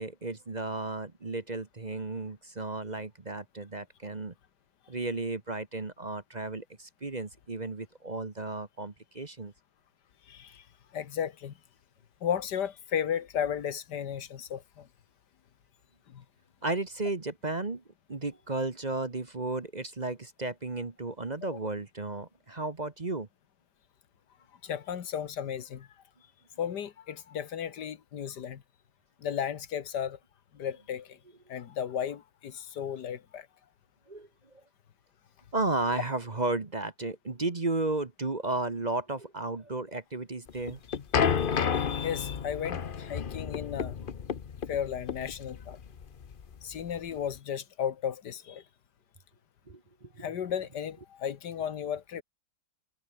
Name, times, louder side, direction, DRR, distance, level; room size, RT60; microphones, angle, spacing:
voice 1, 0.0-4.3 4.9-9.5 16.6-17.8 18.1-23.3 34.1-34.3 35.5-40.8 49.7-50.3, right 2 dB, 25° right, 1.3 m, -34 dB
voice 2, 10.3-10.6 10.9-11.5 12.2-14.9 16.1-16.2 21.4-21.6 24.6-25.9 26.6-28.6 29.2-30.2 30.5-31.2 31.5-33.5 40.9-44.0 44.7-45.8 46.6-48.6 50.2-52.2, left 8 dB, 85° left, 1.9 m, -34 dB
sound 1, 40.5-47.3, left 7 dB, 40° left, 0.9 m, -31 dB
omnidirectional pair, 1.8 m